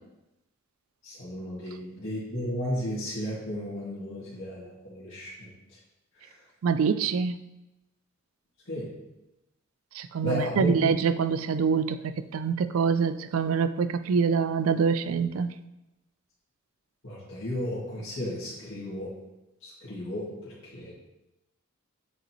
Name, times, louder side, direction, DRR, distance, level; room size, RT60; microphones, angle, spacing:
voice 1, 1.0-5.5 8.7-8.9 10.2-10.7 17.0-19.1 19.6-20.9, equal, 65° left, -9 dB, 2.2 m, -34 dB
voice 2, 6.6-7.4 9.9-12.0 12.3-15.5, right 6 dB, 80° right, 12 dB, 0.4 m, -25 dB
7.8 x 5.1 x 3.0 m, 0.94 s
head